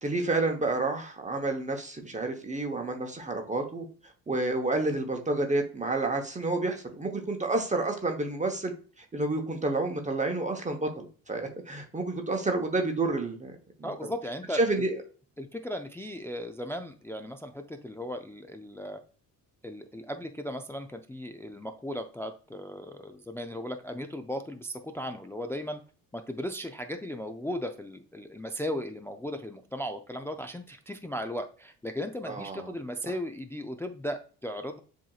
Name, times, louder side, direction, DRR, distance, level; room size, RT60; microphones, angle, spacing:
voice 1, 0.0-3.9 4.3-8.7 9.1-13.5 13.8-14.1 14.5-15.0 32.3-32.7, right 2 dB, 20° right, 4 dB, 0.9 m, -29 dB
voice 2, 13.8-14.8 15.4-19.0 19.6-25.8 26.1-34.8, equal, 5° left, 6 dB, 0.3 m, -36 dB
7.4 x 2.9 x 2.3 m, 0.41 s
cardioid pair, 95°, 37 cm